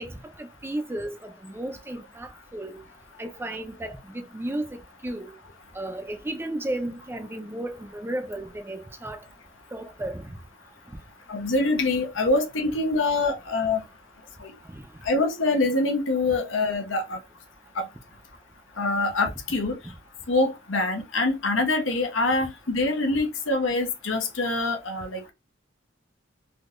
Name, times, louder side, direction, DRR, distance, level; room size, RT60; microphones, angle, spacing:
voice 1, 0.0-2.8 3.2-5.3 5.8-9.2 9.7-10.3 14.7-14.8, right 1 dB, 10° right, 0.4 m, -34 dB
voice 2, 11.3-13.8 15.0-17.2 17.8-17.9 18.8-19.8 20.3-25.3, left 2 dB, 75° left, 0.9 m, -25 dB
3.6 x 2.7 x 2.5 m
head